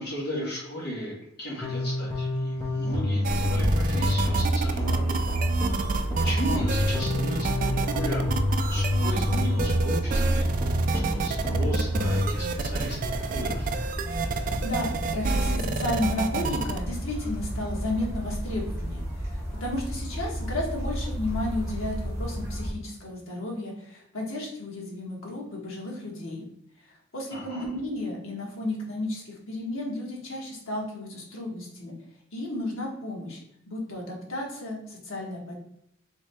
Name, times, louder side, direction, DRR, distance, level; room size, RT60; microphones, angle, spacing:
voice 1, 0.0-5.2 6.2-8.3 8.7-13.7 27.3-27.7, equal, 50° left, -5 dB, 1.4 m, -36 dB
sound 1, 1.6-12.3, equal, 15° left, 0.6 m, -27 dB
sound 2, 3.2-16.8, right 4 dB, 40° right, 0.3 m, -30 dB
sound 3, 3.5-22.7, equal, 15° right, 1.4 m, -33 dB
voice 2, 14.3-19.0 19.3-26.4 26.8-31.9 32.3-33.4 33.7-35.5, left 1 dB, 75° left, -2 dB, 1.3 m, -33 dB
3.6 x 3.2 x 3.3 m, 0.76 s
head